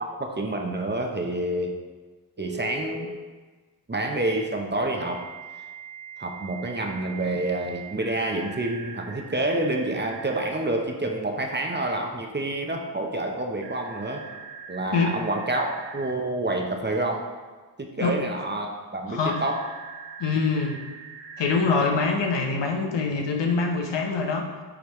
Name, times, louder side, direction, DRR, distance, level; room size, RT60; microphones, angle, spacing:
voice 1, 0.2-1.8 2.4-3.1 3.9-5.2 6.2-14.3 14.7-17.3 17.8-19.7, right 2 dB, 25° right, 2 dB, 0.8 m, -28 dB
Telephone, 2.4-3.1 5.0-10.5 13.6-16.1 19.3-21.8, right 5 dB, 70° right, 0.8 m, -42 dB
voice 2, 19.1-19.4 20.2-20.8 21.4-24.5, left 4 dB, 75° left, 2 dB, 1.0 m, -24 dB
9.8 x 3.4 x 3.1 m, 1.4 s
cardioid pair, 55°, 43 cm